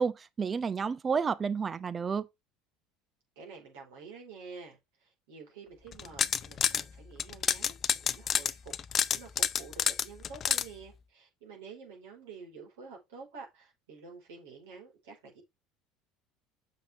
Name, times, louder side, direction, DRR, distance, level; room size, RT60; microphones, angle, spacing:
voice 1, 0.0-2.3, right 5 dB, 30° right, 0.8 m, -30 dB
voice 2, 3.4-15.4, right 4 dB, 65° right, 4.6 m, -49 dB
sound 1, 5.9-6.8 7.2-10.6, left 8 dB, 40° left, 0.6 m, -28 dB
7.8 x 6.9 x 3.5 m
figure-of-eight pair, 65°, 0 cm